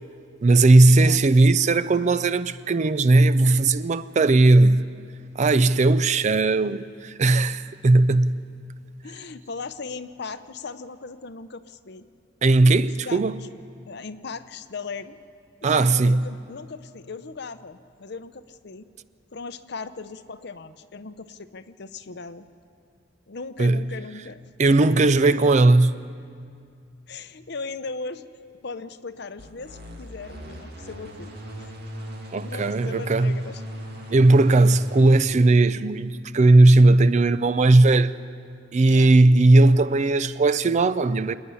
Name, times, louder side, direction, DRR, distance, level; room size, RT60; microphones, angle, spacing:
voice 1, 0.4-4.8 5.4-8.4 12.4-13.3 15.6-16.2 23.6-23.8 24.6-25.9 32.3-33.4 34.1-38.1 38.7-41.3, right 2 dB, 35° right, 0.4 m, -17 dB
voice 2, 9.0-12.0 13.0-13.5 13.9-15.2 15.6-18.9 19.3-22.4 23.3-24.4 25.0-25.5 27.1-28.2 28.6-31.7 32.4-33.7 37.1-37.2 38.8-39.2, left 4 dB, 55° left, 0.7 m, -38 dB
sound 1, 29.4-35.2, equal, 55° right, 2.2 m, -38 dB
27.5 x 9.7 x 9.7 m
head